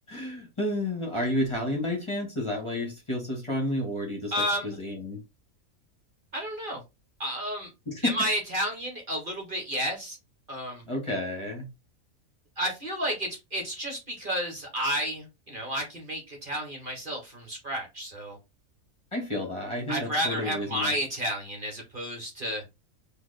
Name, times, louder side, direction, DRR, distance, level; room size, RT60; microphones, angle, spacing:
voice 1, 0.1-4.3 4.6-5.2 7.9-8.1 10.9-11.7 19.1-20.9, left 1 dB, 20° left, 1.6 m, -31 dB
voice 2, 4.3-4.8 6.3-6.8 7.2-7.7 8.0-10.2 10.5-10.8 12.6-18.4 19.9-22.6, equal, 40° right, 1.5 m, -31 dB
4.4 x 2.8 x 4.1 m
omnidirectional pair, 1.5 m